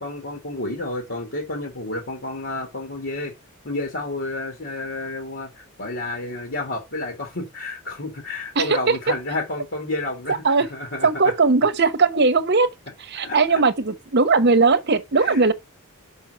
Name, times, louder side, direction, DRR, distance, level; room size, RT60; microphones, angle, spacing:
voice 1, 0.0-3.3 3.6-11.4 13.2-13.4 15.1-15.4, left 2 dB, 60° left, 2.2 m, -30 dB
voice 2, 8.6-9.0 10.4-10.7 11.0-12.7 13.1-15.5, right 4 dB, 50° right, 0.9 m, -18 dB
5.9 x 5.6 x 6.6 m
head